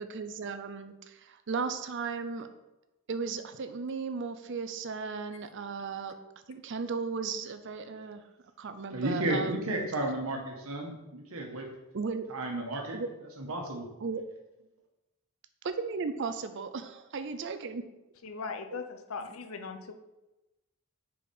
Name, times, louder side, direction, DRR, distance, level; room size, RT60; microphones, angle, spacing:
voice 1, 0.0-2.5 3.1-6.1 6.5-8.2 8.6-9.9 11.9-12.3 12.9-13.1 14.0-14.2 15.6-17.8 18.7-18.8, right 4 dB, 55° right, 10 dB, 0.5 m, -36 dB
voice 2, 8.9-11.7 12.3-13.0 13.4-13.9, right 1 dB, 75° right, 2 dB, 1.3 m, -33 dB
voice 3, 18.2-19.9, left 4 dB, 70° left, 6 dB, 0.6 m, -39 dB
5.0 x 4.8 x 5.3 m, 1.0 s
head